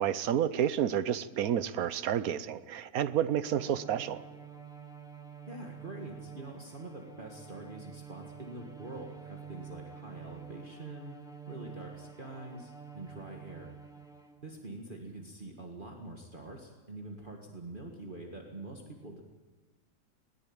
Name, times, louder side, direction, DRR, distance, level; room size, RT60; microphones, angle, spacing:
voice 1, 0.0-4.3, right 10 dB, 75° right, 14 dB, 1.3 m, -30 dB
Bowed string instrument, 3.4-14.6, right 6 dB, 5° right, 1.7 m, -48 dB
voice 2, 5.5-11.2 11.5-13.7 14.4-19.2, right 2 dB, 35° right, 1 dB, 2.0 m, -45 dB
20.5 x 19.0 x 8.8 m, 1.3 s
omnidirectional pair, 1.6 m